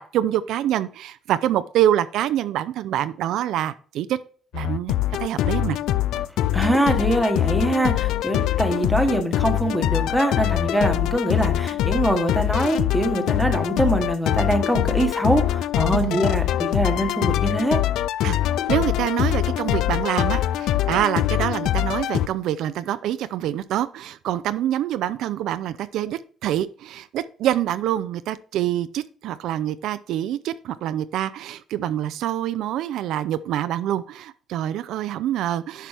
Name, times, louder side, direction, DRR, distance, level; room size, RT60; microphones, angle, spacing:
voice 1, 0.1-4.2 4.5-5.8 15.9-16.2 18.2-18.4 18.7-35.9, right 12 dB, 75° right, 13 dB, 0.4 m, -26 dB
sound 1, 4.5-22.3, left 13 dB, 80° left, 0.4 m, -23 dB
voice 2, 6.5-17.8, right 1 dB, ahead, 4 dB, 1.2 m, -23 dB
10.0 x 6.0 x 3.4 m, 0.42 s
cardioid pair, 160°, 0 cm